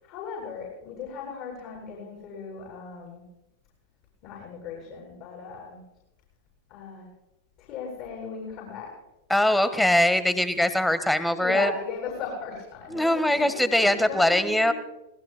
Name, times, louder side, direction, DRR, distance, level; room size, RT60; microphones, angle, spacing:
voice 1, 0.0-3.2 4.2-5.8 6.7-7.1 7.6-8.9 9.5-9.8 11.4-14.7, left 5 dB, 40° left, -4 dB, 7.7 m, -37 dB
voice 2, 9.3-11.7 12.9-14.7, left 1 dB, 5° left, 12 dB, 1.4 m, -22 dB
25.5 x 20.0 x 2.2 m, 0.93 s
figure-of-eight pair, 90°, 0 cm